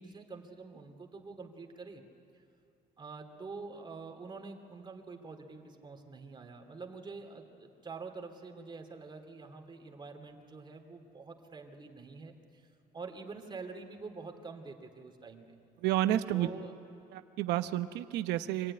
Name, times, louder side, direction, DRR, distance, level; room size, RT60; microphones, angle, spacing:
voice 1, 0.0-2.0 3.0-12.7 12.9-15.6 16.3-16.7, right 4 dB, 25° right, 3 dB, 2.7 m, -46 dB
voice 2, 15.8-16.5 17.1-18.7, right 13 dB, 85° right, 10 dB, 1.0 m, -30 dB
25.5 x 15.5 x 9.8 m, 2.7 s
cardioid pair, 110°, 17 cm